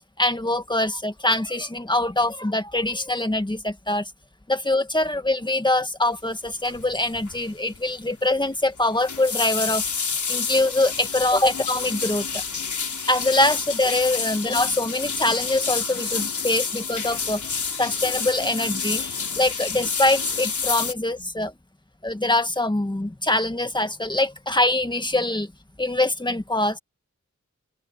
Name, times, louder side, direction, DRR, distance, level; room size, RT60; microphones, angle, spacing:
voice 1, 0.2-4.1 4.5-9.8 10.3-12.4 13.1-21.5 22.0-25.5 25.8-26.8, left 2 dB, 15° left, 1.9 m, -24 dB
sound 1, 6.6-6.9 7.1-7.5 7.7-7.8 8.8-20.9, left 5 dB, 90° left, 3.6 m, -29 dB
open air
wide cardioid pair, 80°, 29 cm